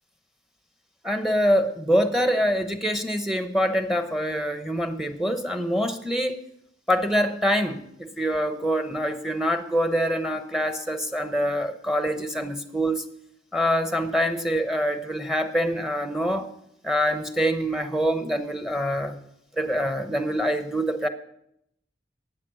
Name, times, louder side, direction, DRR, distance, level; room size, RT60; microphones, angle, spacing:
voice 1, 1.0-6.4 6.9-13.0 13.5-16.5 16.8-19.2 19.6-21.1, equal, ahead, 8 dB, 0.9 m, -25 dB
12.5 x 9.1 x 6.3 m, 0.78 s
head